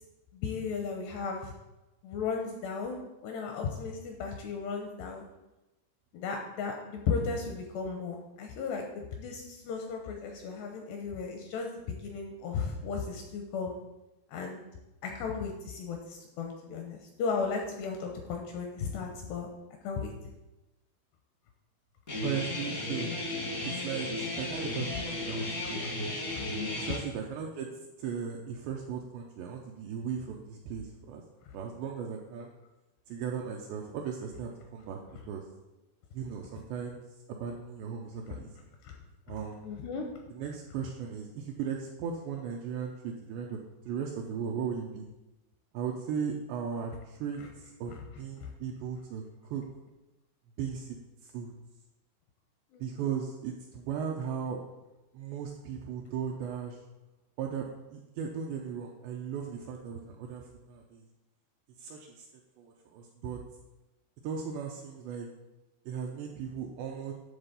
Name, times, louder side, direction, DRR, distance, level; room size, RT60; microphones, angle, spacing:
voice 1, 0.3-1.5 2.0-5.2 6.1-8.9 9.2-13.7 14.3-14.6 15.0-19.5 19.8-20.1 38.8-39.0 39.6-40.1 47.4-47.5 47.9-48.0 48.4-48.5 52.7-52.8, left 5 dB, 80° left, 2 dB, 2.5 m, -35 dB
Guitar, 22.1-27.0, left 2 dB, 60° left, 0.8 m, -34 dB
voice 2, 22.2-23.1 23.6-25.8 26.8-27.7 28.0-31.2 31.5-32.5 33.1-35.0 35.3-35.4 36.1-37.0 37.3-38.5 39.3-39.6 40.3-43.6 43.9-45.1 45.7-49.6 50.6-50.9 51.2-51.5 52.8-54.6 55.1-56.8 57.4-61.0 61.8-62.3 62.6-63.4 64.2-65.3 65.9-67.1, right 7 dB, 85° right, 0 dB, 2.5 m, -37 dB
10.5 x 4.0 x 6.7 m, 1.0 s
omnidirectional pair, 5.7 m